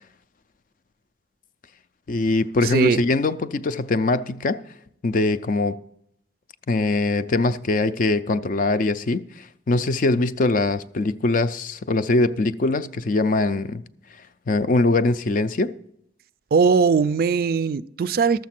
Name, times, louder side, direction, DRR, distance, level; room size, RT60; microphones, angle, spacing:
voice 1, 2.1-4.6 5.0-5.8 6.7-13.8 14.5-15.7, left 2 dB, 50° left, 0.4 m, -22 dB
voice 2, 2.6-3.0 16.5-18.4, right 5 dB, 55° right, 0.3 m, -20 dB
12.5 x 7.3 x 5.9 m
head